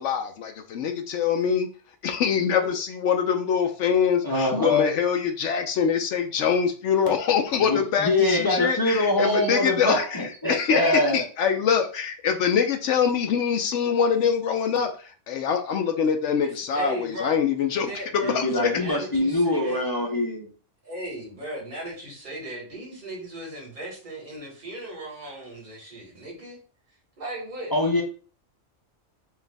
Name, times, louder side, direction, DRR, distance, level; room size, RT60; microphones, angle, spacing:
voice 1, 0.0-1.7 2.0-18.7, left 7 dB, 75° left, 5 dB, 0.9 m, -24 dB
voice 2, 4.2-4.9 7.6-11.2 18.2-20.5 27.7-28.0, left 2 dB, 20° left, 0 dB, 0.6 m, -24 dB
voice 3, 16.7-17.3 17.8-18.4 18.7-19.8 20.8-26.6 27.2-27.8, right 1 dB, 40° right, -4 dB, 1.7 m, -37 dB
4.5 x 2.5 x 3.3 m, 0.39 s
omnidirectional pair, 1.3 m